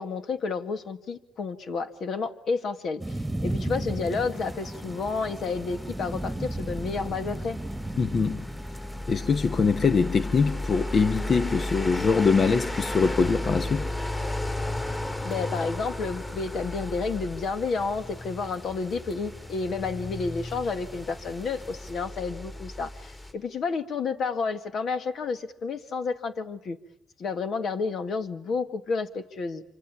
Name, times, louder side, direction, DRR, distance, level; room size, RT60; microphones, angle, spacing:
voice 1, 0.0-7.6 15.2-26.8 27.2-29.6, left 4 dB, 60° left, 2.1 m, -30 dB
sound 1, 3.0-21.9, right 1 dB, 10° right, 1.8 m, -39 dB
sound 2, 4.3-23.3, left 1 dB, 25° left, 5.5 m, -35 dB
voice 2, 8.0-8.4 9.1-13.9, left 5 dB, 45° left, 1.1 m, -23 dB
27.0 x 25.5 x 8.6 m
cardioid pair, 90°, 0 cm